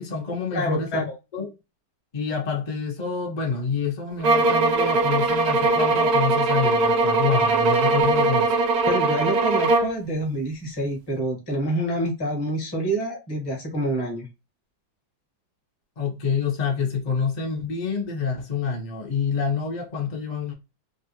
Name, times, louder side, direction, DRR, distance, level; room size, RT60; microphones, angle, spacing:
voice 1, 0.0-1.0 1.3-1.5 2.1-8.5 16.0-20.5, left 5 dB, 60° left, 0.4 m, -27 dB
voice 2, 0.5-1.1 8.8-14.3, right 1 dB, 15° left, 0.8 m, -27 dB
sound 1, 4.2-10.0, right 3 dB, 75° right, 0.9 m, -20 dB
3.2 x 2.5 x 2.8 m
omnidirectional pair, 2.1 m